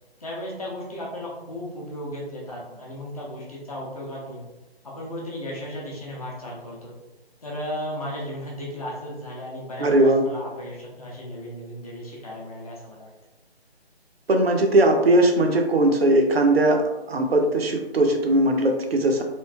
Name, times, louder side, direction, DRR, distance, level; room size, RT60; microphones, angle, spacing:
voice 1, 0.2-4.4 4.8-6.9 7.4-13.1, equal, 35° left, -3 dB, 0.8 m, -35 dB
voice 2, 9.8-10.2 14.3-19.2, right 1 dB, 70° right, 3 dB, 0.6 m, -19 dB
3.0 x 2.5 x 2.2 m, 1.0 s
figure-of-eight pair, 150°, 32 cm